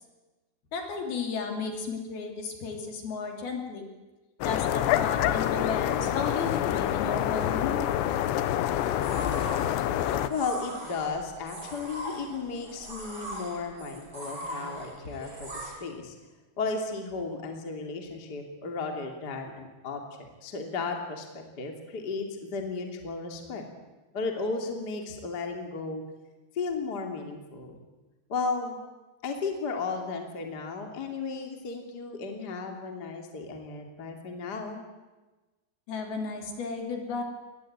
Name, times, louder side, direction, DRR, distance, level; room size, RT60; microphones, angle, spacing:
voice 1, 0.7-3.9 4.4-7.9 35.9-37.2, left 4 dB, 60° left, 3 dB, 4.6 m, -34 dB
sound 1, 4.4-10.3, left 11 dB, 80° left, 3.3 m, -27 dB
sound 2, 8.5-15.7, equal, 25° right, 6.6 m, -41 dB
voice 2, 10.3-16.1 16.6-23.6 24.1-26.0 26.5-27.7 28.3-28.8 29.2-34.8, left 4 dB, 25° left, 3 dB, 2.6 m, -34 dB
23.0 x 19.5 x 9.0 m, 1.2 s
omnidirectional pair, 5.2 m